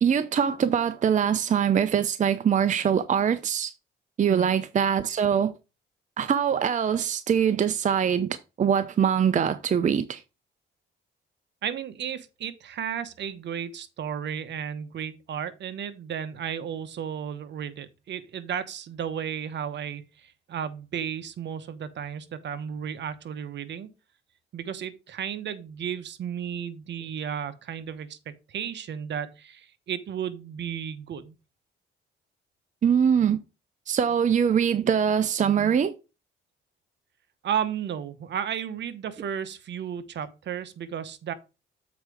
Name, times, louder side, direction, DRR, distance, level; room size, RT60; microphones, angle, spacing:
voice 1, 0.0-3.7 4.2-5.5 6.2-10.2 32.8-33.4 33.9-35.9, right 8 dB, 40° right, 0.6 m, -23 dB
voice 2, 11.6-23.9 24.5-31.3 37.4-41.3, right 8 dB, 65° right, 1.0 m, -33 dB
7.3 x 4.6 x 4.8 m
cardioid pair, 90°, 20 cm